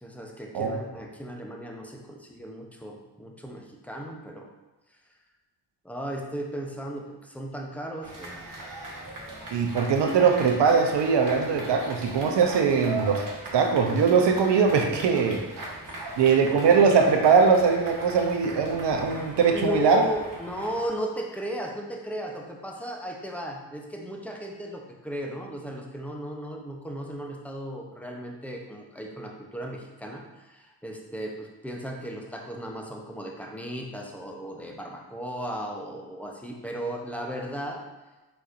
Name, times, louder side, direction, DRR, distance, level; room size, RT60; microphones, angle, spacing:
voice 1, 0.0-4.5 5.8-8.4 9.1-9.2 19.5-37.8, equal, 5° left, 1 dB, 0.8 m, -36 dB
sound 1, 8.0-20.9, right 2 dB, 40° right, 1.3 m, -39 dB
voice 2, 9.5-13.2 13.5-15.4 16.2-20.0, right 5 dB, 60° right, 4 dB, 0.9 m, -21 dB
4.5 x 4.0 x 2.6 m, 1.1 s
hypercardioid pair, 45°, 48 cm